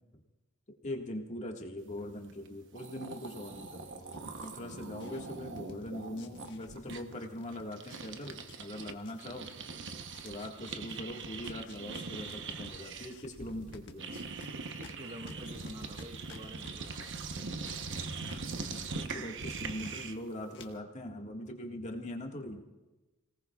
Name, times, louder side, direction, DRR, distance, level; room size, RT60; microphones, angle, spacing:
voice 1, 0.8-9.5 10.2-14.1 18.3-18.4 18.9-22.6, left 1 dB, 35° left, 1 dB, 1.7 m, -41 dB
sound 1, 2.5-2.6 2.7-8.9 9.2-20.3, right 4 dB, 55° right, 0.9 m, -42 dB
sound 2, 3.5-7.1 7.3-18.8 19.1-20.1 20.5-20.6, left 3 dB, 55° left, 1.4 m, -54 dB
voice 2, 14.5-17.0, equal, 30° right, 3 dB, 1.3 m, -47 dB
30.0 x 18.5 x 2.4 m, 1.1 s
head